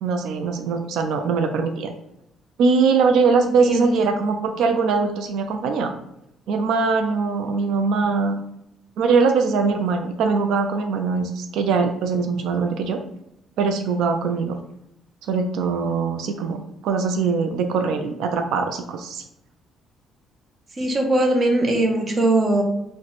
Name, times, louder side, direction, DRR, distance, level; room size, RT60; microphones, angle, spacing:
voice 1, 0.0-1.9 2.6-5.9 6.5-8.4 9.0-13.0 13.6-14.6 15.3-19.2, right 4 dB, 80° right, 5 dB, 0.3 m, -22 dB
voice 2, 3.6-4.1 20.8-22.6, right 2 dB, 30° right, 2 dB, 0.6 m, -20 dB
3.9 x 2.1 x 3.0 m, 0.82 s
cardioid pair, 145°, 0 cm